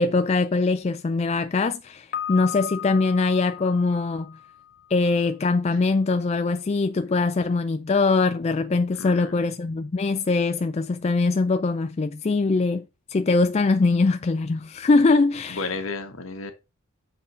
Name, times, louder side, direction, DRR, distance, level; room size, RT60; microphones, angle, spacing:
voice 1, 0.0-4.3 4.9-12.8 13.1-15.7, left 3 dB, 30° left, 0.3 m, -22 dB
Piano, 2.1-5.0, left 10 dB, 45° left, 1.2 m, -36 dB
voice 2, 9.0-9.5 15.5-16.5, left 3 dB, 65° left, 1.4 m, -32 dB
7.6 x 3.8 x 5.6 m
head